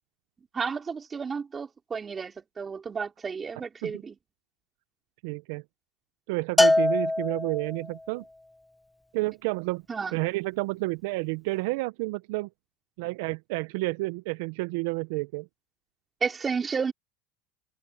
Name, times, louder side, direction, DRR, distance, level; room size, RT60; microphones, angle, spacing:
voice 1, 0.5-4.2 9.9-10.2 16.2-16.9, right 5 dB, 25° right, 3.2 m, -32 dB
voice 2, 5.2-5.6 6.3-8.2 9.1-9.8 10.1-12.5 13.0-15.5, right 23 dB, 70° right, 0.8 m, -30 dB
Bell, 6.6-7.9, left 2 dB, 10° left, 1.3 m, -23 dB
hypercardioid pair, 95°, 0 cm